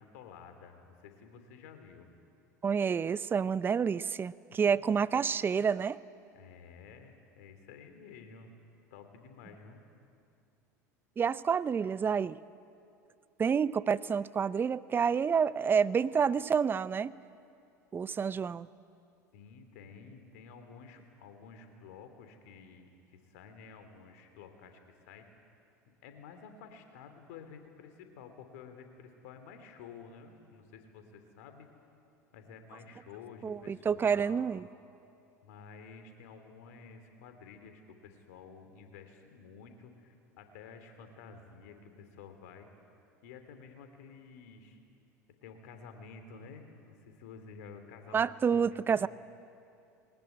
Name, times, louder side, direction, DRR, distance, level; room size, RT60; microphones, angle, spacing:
voice 1, 0.0-2.1 6.3-8.5 8.9-9.8 19.3-25.2 26.0-31.7 32.3-34.5 35.4-42.7 43.2-44.8 45.4-49.1, left 5 dB, 65° left, 7 dB, 3.0 m, -51 dB
voice 2, 2.6-6.0 11.2-12.4 13.4-17.1 17.9-18.7 33.4-34.6 48.1-49.1, right 6 dB, 25° right, 19 dB, 0.6 m, -29 dB
21.5 x 19.5 x 9.6 m, 2.6 s
hypercardioid pair, 75°, 9 cm